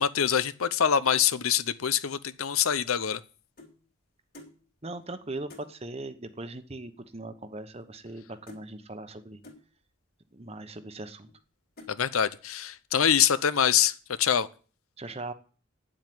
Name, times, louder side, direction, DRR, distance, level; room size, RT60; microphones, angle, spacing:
voice 1, 0.0-3.2 11.9-13.9 14.2-14.5, left 8 dB, 85° left, 0.7 m, -24 dB
sound 1, 2.6-3.8 4.3-4.6 5.0-5.1 5.5-5.7 6.6-6.7 6.9-7.2 7.5-8.2 8.5-8.7 9.4-9.7 10.4-10.5 11.0-11.4 11.8-12.0 12.5-12.7 13.0-13.4, left 2 dB, 45° left, 3.0 m, -52 dB
voice 2, 4.8-9.4 10.3-11.3 15.0-15.3, right 2 dB, 30° right, 0.9 m, -39 dB
9.3 x 7.7 x 9.3 m
head